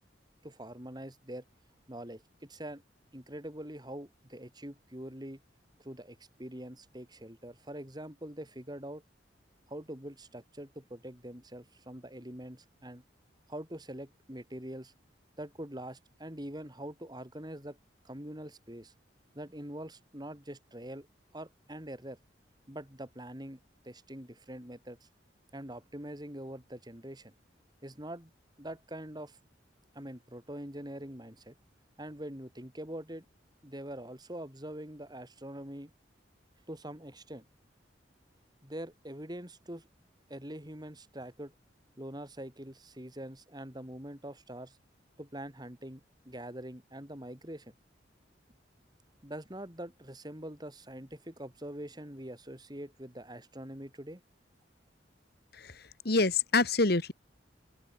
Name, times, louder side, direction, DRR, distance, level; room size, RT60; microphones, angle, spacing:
voice 1, 0.4-1.4 1.9-2.8 3.1-5.4 5.8-9.0 9.7-13.0 13.5-14.9 15.4-17.8 18.0-18.9 19.3-21.1 21.3-22.2 22.7-23.6 23.8-25.1 25.5-27.3 27.8-28.3 28.6-29.4 29.9-31.5 32.0-33.2 33.6-35.9 36.7-37.4 38.6-39.9 40.3-41.5 42.0-44.8 45.2-47.7 49.2-54.2, right 1 dB, 20° right, 4.5 m, -44 dB
voice 2, 55.6-57.1, left 3 dB, 60° left, 1.8 m, -27 dB
open air
head